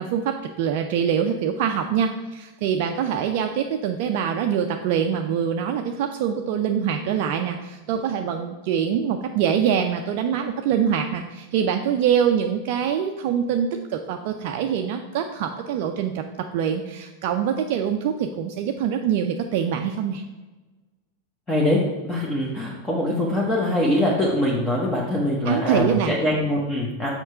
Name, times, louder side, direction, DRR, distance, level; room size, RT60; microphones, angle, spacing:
voice 1, 0.0-16.2 16.5-20.2 25.4-26.1, right 8 dB, 45° right, 4 dB, 0.4 m, -24 dB
voice 2, 21.5-27.1, left 1 dB, 15° left, -3 dB, 1.1 m, -23 dB
6.4 x 4.4 x 5.4 m, 1.2 s
figure-of-eight pair, 90°, 0 cm